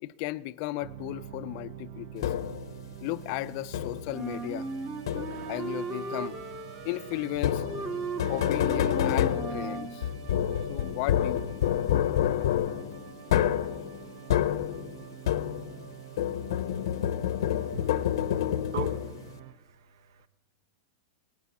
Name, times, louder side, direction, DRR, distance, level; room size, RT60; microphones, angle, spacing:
voice 1, 0.0-2.5 3.0-4.7 5.5-6.4 6.8-7.6 8.3-10.0 10.7-11.6, left 17 dB, 40° left, 0.4 m, -35 dB
sound 1, 0.8-19.5, right 8 dB, 50° right, 0.7 m, -46 dB
sound 2, 2.2-2.7 3.7-4.2 5.1-5.6 7.4-15.9 16.2-19.3, left 10 dB, 75° left, 0.7 m, -28 dB
Wind instrument woodwind instrument, 4.1-9.9, right 3 dB, 20° right, 1.0 m, -37 dB
voice 2, 17.5-17.9 18.7-20.3, right 8 dB, 75° right, 1.1 m, -41 dB
18.0 x 14.5 x 4.1 m
supercardioid pair, 160°, 2 cm